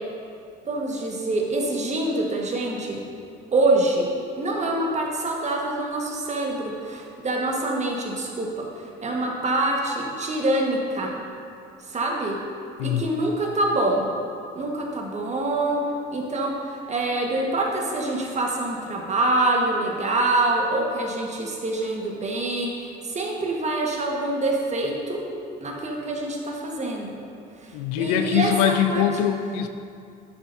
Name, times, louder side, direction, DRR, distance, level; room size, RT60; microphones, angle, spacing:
voice 1, 0.6-3.0 3.5-4.1 4.4-11.1 11.9-12.4 12.8-14.1 14.5-15.8 16.1-25.2 25.6-27.2 27.6-29.0, right 2 dB, 35° right, 0 dB, 1.5 m, -25 dB
voice 2, 27.7-29.7, left 10 dB, 80° left, 8 dB, 0.5 m, -23 dB
10.0 x 6.8 x 2.7 m, 2.5 s
hypercardioid pair, 65°, 20 cm